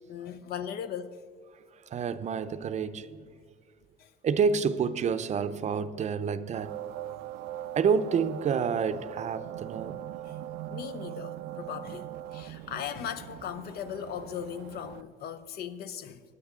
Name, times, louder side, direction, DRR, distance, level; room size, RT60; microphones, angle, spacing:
voice 1, 0.1-1.2 4.0-4.1 10.3-10.4 10.7-16.2, left 9 dB, 70° left, 0.7 m, -38 dB
voice 2, 1.9-3.2 4.2-6.7 7.8-10.0, right 6 dB, 45° right, 0.6 m, -28 dB
sound 1, 6.5-15.0, right 12 dB, 85° right, 0.4 m, -41 dB
18.5 x 9.6 x 3.7 m
cardioid pair, 110°, 17 cm